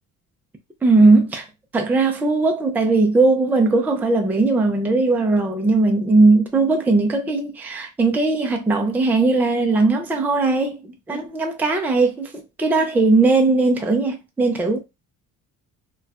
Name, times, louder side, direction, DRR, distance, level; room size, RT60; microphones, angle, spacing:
voice 1, 0.8-1.4 1.7-10.8 11.1-14.8, right 3 dB, 5° right, 0.4 m, -18 dB
4.0 x 2.3 x 2.4 m
cardioid pair, 175°, 32 cm